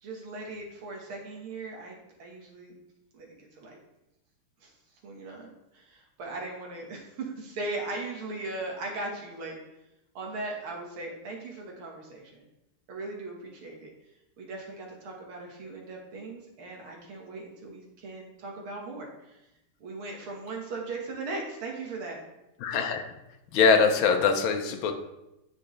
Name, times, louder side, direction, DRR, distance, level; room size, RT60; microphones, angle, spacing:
voice 1, 0.0-2.8 3.1-3.8 4.6-4.7 5.0-9.6 10.1-12.4 12.9-13.9 14.4-19.4 19.8-22.2, right 2 dB, 70° right, -1 dB, 2.3 m, -38 dB
voice 2, 22.6-23.0 23.5-24.9, left 5 dB, 70° left, 4 dB, 1.6 m, -22 dB
9.4 x 6.1 x 3.2 m, 0.91 s
omnidirectional pair, 2.4 m